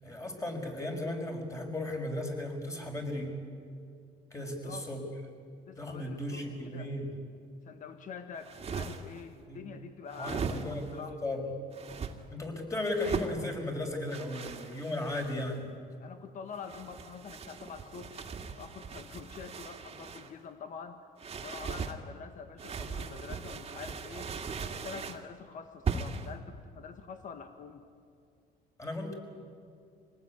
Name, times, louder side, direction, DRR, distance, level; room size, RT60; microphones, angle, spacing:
voice 1, 0.0-3.4 4.3-5.1 5.8-7.1 9.5-9.7 10.2-11.5 12.3-15.7 28.8-29.1, left 1 dB, 20° left, 2 dB, 5.6 m, -36 dB
voice 2, 4.3-4.9 5.7-6.9 7.6-11.2 16.0-21.1 21.4-24.3 24.6-27.8, left 6 dB, 50° left, 7 dB, 1.5 m, -46 dB
sound 1, 8.3-9.2 10.1-11.0 11.7-12.1 12.9-13.4 14.1-15.5 16.5-20.3 21.2-22.0 22.6-25.2 25.9-26.3, right 5 dB, 35° right, 2.2 m, -38 dB
26.0 x 19.0 x 9.6 m, 2.4 s
cardioid pair, 110°, 17 cm